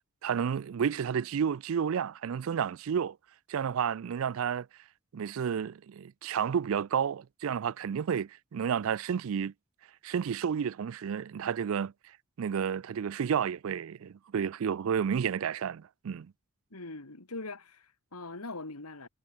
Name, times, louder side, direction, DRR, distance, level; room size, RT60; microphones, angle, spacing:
voice 1, 0.2-3.2 3.5-4.7 5.1-9.5 10.0-11.9 12.4-16.3, right 7 dB, 65° right, 0.4 m, -31 dB
voice 2, 16.7-19.1, left 3 dB, 85° left, 2.7 m, -42 dB
head